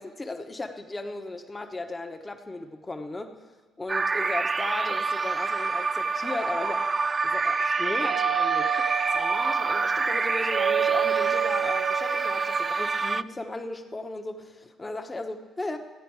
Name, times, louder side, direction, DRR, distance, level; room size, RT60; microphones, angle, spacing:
voice 1, 0.0-3.4 3.8-15.8, left 2 dB, 20° left, 5 dB, 1.1 m, -36 dB
sound 1, 3.9-13.2, right 4 dB, 35° right, 0.3 m, -27 dB
Doorbell, 8.0-12.8, right 10 dB, 70° right, 1.0 m, -30 dB
14.5 x 9.3 x 4.8 m, 1.4 s
supercardioid pair, 60°, 0 cm